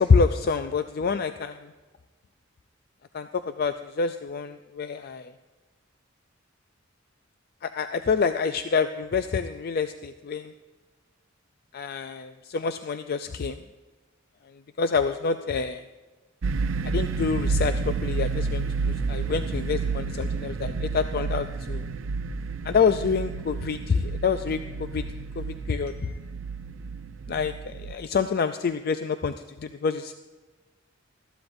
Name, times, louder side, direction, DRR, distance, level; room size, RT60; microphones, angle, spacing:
voice 1, 0.0-1.7 3.1-5.3 7.6-10.5 11.7-13.6 14.8-15.8 16.8-21.8 22.6-25.1 25.4-26.2 27.3-30.1, left 5 dB, 50° left, 9 dB, 0.4 m, -27 dB
sound 1, 16.4-27.9, right 4 dB, 75° right, 0.5 m, -30 dB
20.0 x 13.5 x 2.6 m, 1.3 s
head